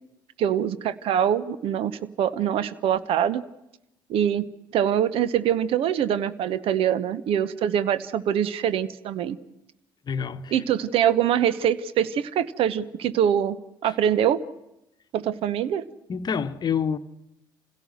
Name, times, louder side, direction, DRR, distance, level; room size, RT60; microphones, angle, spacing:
voice 1, 0.4-3.4 4.1-4.5 4.7-9.4 10.5-13.6 13.8-14.4 15.1-15.8, right 9 dB, 55° right, 1.0 m, -24 dB
voice 2, 10.1-10.6 13.8-13.9 16.1-17.0, left 7 dB, 40° left, 1.1 m, -27 dB
28.5 x 16.5 x 6.4 m
figure-of-eight pair, 55°, 11 cm